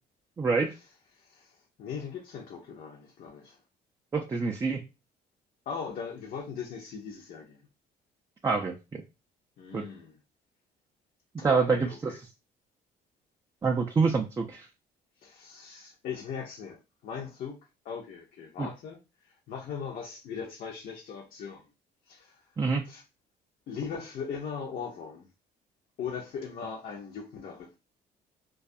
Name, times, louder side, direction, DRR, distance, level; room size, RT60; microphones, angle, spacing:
voice 1, 0.4-0.7 4.1-4.8 8.4-8.8 9.7-9.8 11.4-12.1 13.6-14.7 18.6-18.7 22.6-22.8, right 4 dB, 20° right, 0.3 m, -26 dB
voice 2, 1.1-3.6 5.7-7.7 9.6-10.2 11.4-12.2 15.2-17.6 17.8-21.6 22.0-22.5 22.8-23.0 23.7-25.3 26.0-27.8, left 6 dB, 60° left, 0.6 m, -39 dB
2.3 x 2.2 x 2.6 m
cardioid pair, 110°, 17 cm